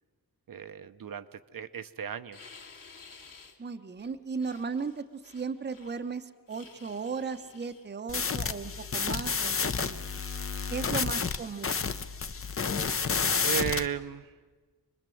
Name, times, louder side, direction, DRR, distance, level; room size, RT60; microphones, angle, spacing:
voice 1, 0.5-2.4 10.8-11.2 13.4-14.3, right 8 dB, 65° right, 10 dB, 0.8 m, -36 dB
sound 1, 2.3-3.6 4.0-6.1 6.5-7.9 8.6-9.6 10.0-10.8 11.1-12.6, left 4 dB, 60° left, 2.6 m, -54 dB
voice 2, 3.6-10.1 10.7-11.8, right 5 dB, 30° right, 8 dB, 0.8 m, -36 dB
sound 2, 8.1-13.9, left 5 dB, 35° left, 0.8 m, -30 dB
26.0 x 21.0 x 7.7 m, 1.3 s
wide cardioid pair, 165°, 37 cm